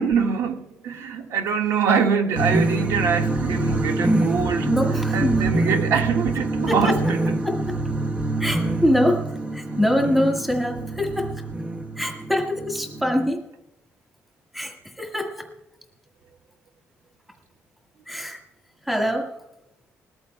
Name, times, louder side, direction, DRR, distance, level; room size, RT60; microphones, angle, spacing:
voice 1, 0.0-4.7 5.1-7.2, right 6 dB, 75° right, 1.6 m, -24 dB
sound 1, 2.3-13.3, right 2 dB, 30° right, 1.1 m, -26 dB
voice 2, 4.6-5.5 6.7-7.0 7.4-7.8 8.4-11.3 12.0-13.5 14.5-15.5 18.1-18.4 18.9-19.3, equal, 5° right, 1.7 m, -24 dB
21.0 x 14.0 x 2.2 m
cardioid pair, 160°, 5 cm